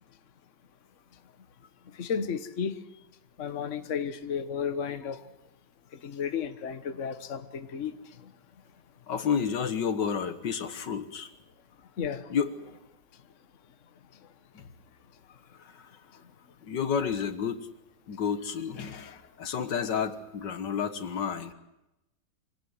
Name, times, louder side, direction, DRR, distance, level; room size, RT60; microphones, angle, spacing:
voice 1, 2.0-2.8 3.4-5.2 6.0-7.9 12.0-12.3, left 7 dB, 45° left, 10 dB, 1.5 m, -33 dB
voice 2, 9.1-11.3 12.3-12.8 14.5-14.7 15.6-15.9 16.6-17.7 18.1-21.5, left 7 dB, 70° left, 11 dB, 1.9 m, -31 dB
25.5 x 17.5 x 9.4 m, 0.93 s
omnidirectional pair, 2.0 m